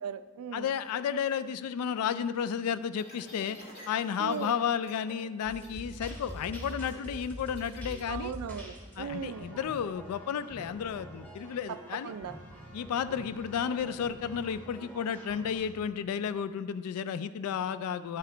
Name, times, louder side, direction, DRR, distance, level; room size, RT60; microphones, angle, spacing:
voice 1, 0.0-0.7 4.2-4.6 8.1-9.6 12.0-12.3, right 7 dB, 75° right, 13 dB, 0.3 m, -38 dB
voice 2, 0.5-3.6 3.9-8.3 9.0-12.1 12.7-18.2, left 7 dB, 85° left, 15 dB, 0.3 m, -32 dB
sound 1, 2.9-4.5 4.8-5.2 5.4-8.0, equal, 45° left, 1.7 m, -50 dB
sound 2, 5.4-15.7, equal, 5° left, 1.3 m, -45 dB
10.5 x 4.8 x 4.4 m, 1.4 s
head